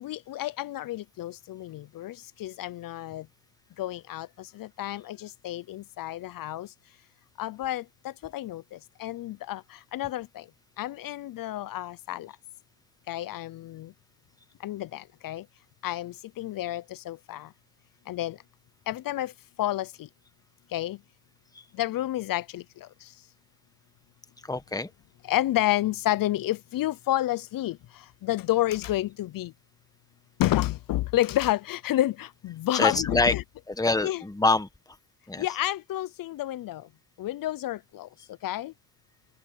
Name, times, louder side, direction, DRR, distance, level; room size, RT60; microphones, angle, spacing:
voice 1, 0.0-2.1 2.4-3.2 3.8-4.3 4.6-5.2 5.4-6.7 7.4-7.8 8.3-8.6 9.0-9.6 9.9-10.3 10.8-12.3 13.1-13.9 14.6-15.4 15.8-17.5 18.1-18.3 18.9-19.3 19.6-19.9 20.7-21.0 21.8-22.6 25.3-27.8 28.2-29.5 30.4-33.4 34.0-34.2 35.4-36.8 37.2-38.1 38.4-38.7, left 14 dB, 65° left, 0.6 m, -29 dB
voice 2, 24.5-24.9 32.7-33.3 33.7-34.7 35.3-35.5, left 3 dB, 10° left, 1.5 m, -25 dB
cardioid pair, 75°, 37 cm